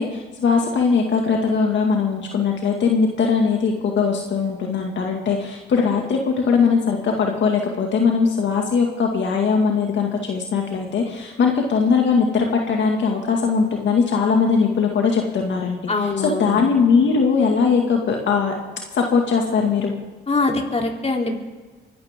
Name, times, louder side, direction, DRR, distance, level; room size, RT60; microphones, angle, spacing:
voice 1, 0.0-15.8 16.4-18.5 18.9-19.9, left 5 dB, 75° left, 1 dB, 2.1 m, -20 dB
voice 2, 15.9-16.6 20.3-21.4, left 3 dB, 35° left, 1 dB, 3.4 m, -23 dB
24.5 x 12.5 x 3.7 m, 1.3 s
cardioid pair, 60°, 19 cm